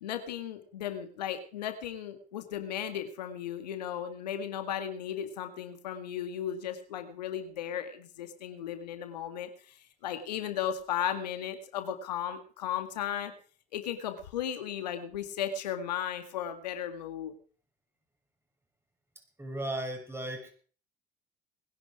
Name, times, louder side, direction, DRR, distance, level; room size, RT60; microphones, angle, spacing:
voice 1, 0.0-9.8 10.0-13.3 13.7-17.3, left 9 dB, 85° left, 8 dB, 1.9 m, -35 dB
voice 2, 19.4-20.5, right 1 dB, 10° right, 5 dB, 6.9 m, -36 dB
21.0 x 11.0 x 4.9 m, 0.42 s
hypercardioid pair, 65°, 21 cm